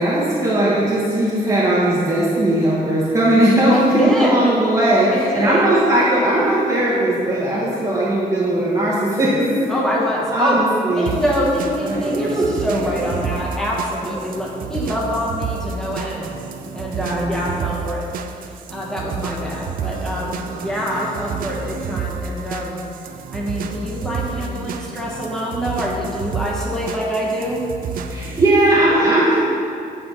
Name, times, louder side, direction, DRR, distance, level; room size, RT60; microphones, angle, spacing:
voice 1, 0.0-9.7 10.3-11.2 11.8-13.2 14.0-14.1 16.9-17.4 28.1-29.5, right 1 dB, 20° right, -7 dB, 1.1 m, -18 dB
voice 2, 3.7-4.5 5.1-5.7 8.4-8.5 9.7-10.6 11.0-16.3 16.7-18.0 18.5-22.8 23.3-27.6, equal, 5° left, -5 dB, 1.3 m, -25 dB
sound 1, 11.1-28.5, right 5 dB, 70° right, 0.5 m, -30 dB
8.3 x 4.3 x 5.5 m, 2.5 s
wide cardioid pair, 165°, 15 cm